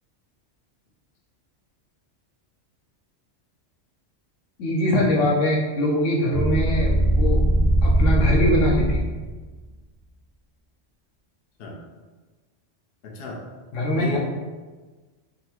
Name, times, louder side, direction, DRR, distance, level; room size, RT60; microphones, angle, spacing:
voice 1, 4.6-7.4 7.8-9.1 13.7-14.2, equal, 85° left, -2 dB, 1.0 m, -22 dB
sound 1, 6.3-9.3, right 1 dB, 35° right, 0.4 m, -20 dB
voice 2, 13.0-13.5 13.9-14.2, left 3 dB, 60° left, -1 dB, 0.7 m, -34 dB
3.9 x 2.0 x 2.8 m, 1.3 s
omnidirectional pair, 1.3 m